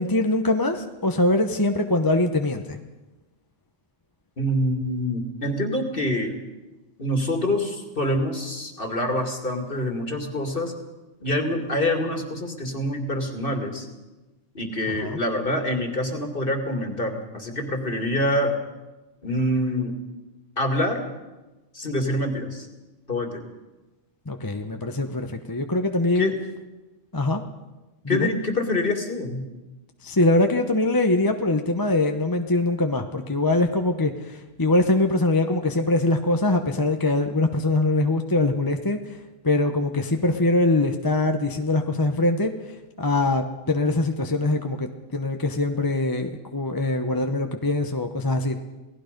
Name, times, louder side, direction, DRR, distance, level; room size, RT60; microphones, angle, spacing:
voice 1, 0.0-2.8 15.0-15.2 24.3-26.3 27.1-27.4 28.0-28.3 30.0-39.2 39.4-48.6, left 2 dB, 20° left, 5 dB, 0.9 m, -23 dB
voice 2, 4.4-6.3 7.0-10.7 11.2-13.9 14.5-18.6 19.2-19.9 20.6-21.0 21.7-22.7 23.1-23.5 26.1-26.3 28.1-29.4, left 1 dB, 40° left, 4 dB, 2.6 m, -26 dB
28.0 x 18.0 x 5.3 m, 1.1 s
omnidirectional pair, 1.4 m